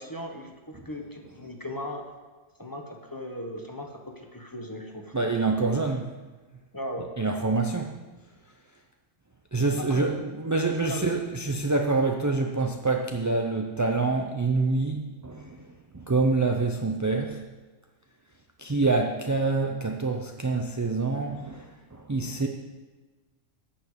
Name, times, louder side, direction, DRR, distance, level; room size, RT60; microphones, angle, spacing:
voice 1, 0.0-2.0 2.6-5.1 6.7-7.1 9.8-10.2 10.8-11.1, equal, 15° left, 1.2 m, -37 dB
voice 2, 5.1-6.1 7.2-7.9 9.5-15.7 15.9-17.4 18.6-22.5, right 3 dB, 25° right, 0.4 m, -26 dB
11.0 x 5.9 x 8.1 m
omnidirectional pair, 1.3 m